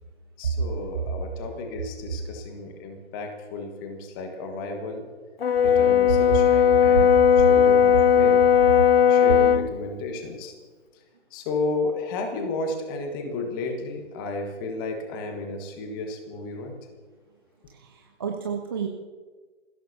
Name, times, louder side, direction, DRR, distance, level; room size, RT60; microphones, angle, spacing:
voice 1, 0.4-5.0 5.6-7.1 7.4-8.4 9.1-10.5 11.3-16.7, left 3 dB, 20° left, 4 dB, 1.6 m, -33 dB
Brass instrument, 5.4-9.7, left 8 dB, 55° left, 0.5 m, -17 dB
voice 2, 6.8-7.5 17.7-18.9, right 6 dB, 20° right, 2 dB, 0.6 m, -29 dB
27.5 x 16.0 x 2.8 m, 1.4 s
figure-of-eight pair, 140°, 36 cm